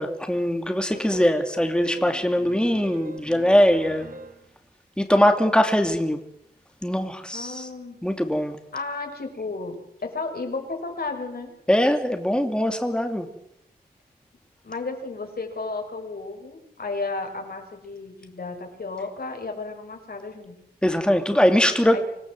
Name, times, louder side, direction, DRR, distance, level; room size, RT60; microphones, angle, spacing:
voice 1, 0.0-4.1 5.0-6.2 6.8-7.7 8.0-8.6 11.7-13.3 20.8-22.0, equal, 5° left, 5 dB, 2.5 m, -21 dB
sound 1, 0.9-4.5, right 3 dB, 55° right, 3.8 m, -41 dB
voice 2, 7.3-8.0 8.7-11.5 14.6-20.6 21.9-22.0, left 3 dB, 65° left, 3 dB, 5.8 m, -33 dB
26.0 x 17.0 x 7.7 m, 0.76 s
wide cardioid pair, 60°, 17 cm